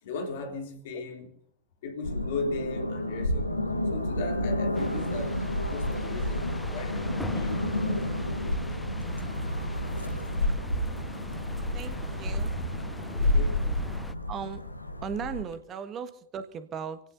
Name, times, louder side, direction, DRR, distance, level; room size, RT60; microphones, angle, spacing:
voice 1, 0.0-1.3 1.8-3.6 3.9-8.6 13.3-13.6, left 3 dB, 55° left, 3.1 m, -37 dB
sound 1, 2.0-15.4, left 1 dB, 85° left, 1.3 m, -30 dB
sound 2, 4.7-14.1, left 2 dB, 5° left, 0.6 m, -42 dB
voice 2, 11.5-12.7 14.3-14.6 15.0-17.0, right 7 dB, 30° right, 1.5 m, -37 dB
27.5 x 17.5 x 2.7 m
figure-of-eight pair, 90°, 0 cm